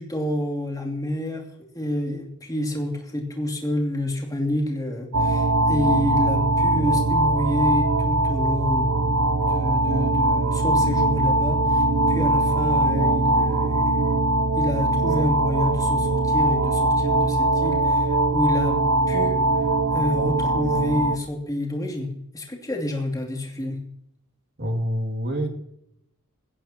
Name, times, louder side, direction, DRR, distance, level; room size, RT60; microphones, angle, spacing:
voice 1, 0.0-8.9 9.5-14.2 14.5-18.8 19.1-19.7 19.9-23.8, left 1 dB, 15° left, 0 dB, 2.7 m, -28 dB
sound 1, 5.1-21.2, right 2 dB, 85° right, 0.9 m, -21 dB
voice 2, 24.6-25.5, equal, 50° right, 4 dB, 2.4 m, -26 dB
20.0 x 16.5 x 2.9 m, 0.78 s
head